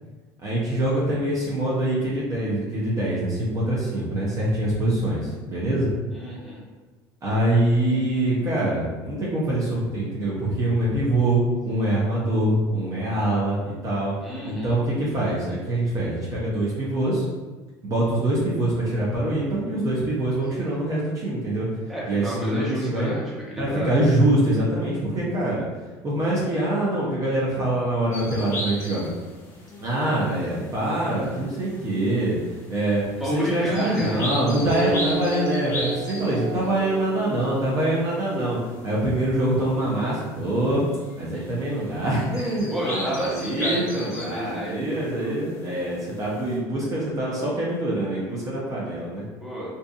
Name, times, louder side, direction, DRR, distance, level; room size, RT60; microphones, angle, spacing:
voice 1, 0.4-5.9 7.2-14.1 14.4-17.2 17.8-21.7 22.0-23.1 23.6-25.6 26.0-29.1 29.8-32.4 32.7-33.0 33.3-38.6 38.8-40.8 41.2-49.2, right 1 dB, 35° right, -6 dB, 0.7 m, -24 dB
voice 2, 6.1-6.6 14.2-14.8 20.6-20.7 21.9-24.0 33.2-34.5 42.7-44.8 45.2-45.4 49.4-49.7, equal, 5° right, -7 dB, 1.0 m, -31 dB
sound 1, 28.1-46.6, left 1 dB, 30° left, 1.1 m, -38 dB
sound 2, 34.6-39.5, right 2 dB, 90° right, 0.4 m, -32 dB
2.6 x 2.5 x 2.3 m, 1.3 s
supercardioid pair, 95°, 10 cm